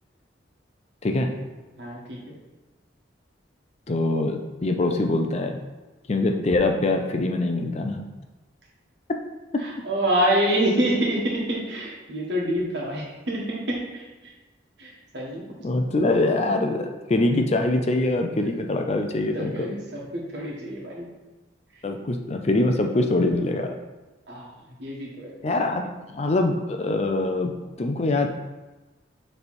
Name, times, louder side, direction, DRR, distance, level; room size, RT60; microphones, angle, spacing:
voice 1, 1.0-1.3 3.9-5.6 6.1-8.1 9.5-9.6 15.6-19.7 21.8-23.7 25.4-27.5 27.8-28.3, left 2 dB, 35° left, 4 dB, 0.5 m, -23 dB
voice 2, 1.8-2.3 9.6-14.3 14.8-15.5 19.3-21.1 24.3-24.5 24.8-25.3, right 1 dB, 60° right, -3 dB, 1.7 m, -27 dB
6.9 x 3.4 x 4.3 m, 1.1 s
head